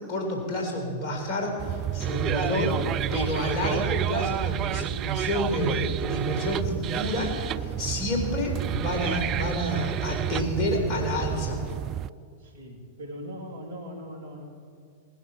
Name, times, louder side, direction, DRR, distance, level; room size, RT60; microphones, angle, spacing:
voice 1, 0.0-11.6, left 1 dB, 40° left, 1 dB, 4.2 m, -29 dB
sound 1, 1.6-12.1, right 12 dB, 35° right, 0.3 m, -30 dB
voice 2, 12.4-14.5, equal, 65° right, 1 dB, 2.9 m, -40 dB
19.5 x 10.5 x 5.9 m, 2.2 s
figure-of-eight pair, 95°, 0 cm